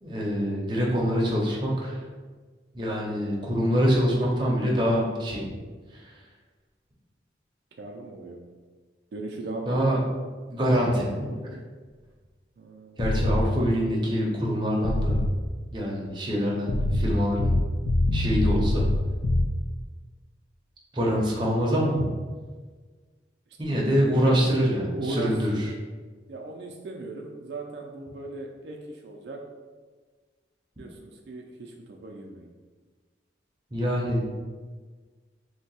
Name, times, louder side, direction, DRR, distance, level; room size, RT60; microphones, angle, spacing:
voice 1, 0.0-2.0 2.7-5.4 9.7-10.0 10.5-11.1 11.4-11.5 13.0-15.2 15.7-17.5 18.1-18.9 20.9-22.1 23.6-25.5 33.7-34.3, equal, 25° right, -3 dB, 0.6 m, -25 dB
voice 2, 7.8-8.4 9.1-9.9 12.6-13.6 25.0-25.7 26.3-29.4 30.8-32.5, right 2 dB, 70° right, 1 dB, 0.3 m, -38 dB
sound 1, 13.0-13.4 14.8-15.3 16.7-19.4, left 1 dB, 65° left, 0.4 m, -23 dB
2.7 x 2.2 x 4.0 m, 1.4 s
head